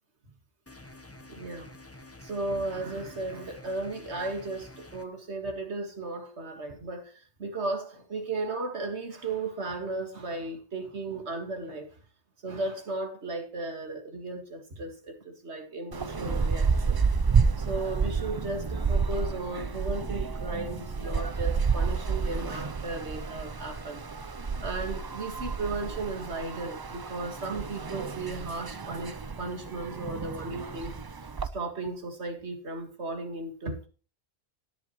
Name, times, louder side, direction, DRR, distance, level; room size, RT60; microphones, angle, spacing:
sound 1, 0.7-5.1, left 2 dB, 15° left, 1.0 m, -49 dB
voice 1, 1.3-1.7 2.2-12.0 12.4-17.0 17.6-24.0 24.6-31.0 31.5-33.9, right 2 dB, 70° right, 2.2 m, -35 dB
sound 2, 15.9-31.5, right 5 dB, 35° right, 0.3 m, -30 dB
17.5 x 7.8 x 3.1 m
omnidirectional pair, 1.2 m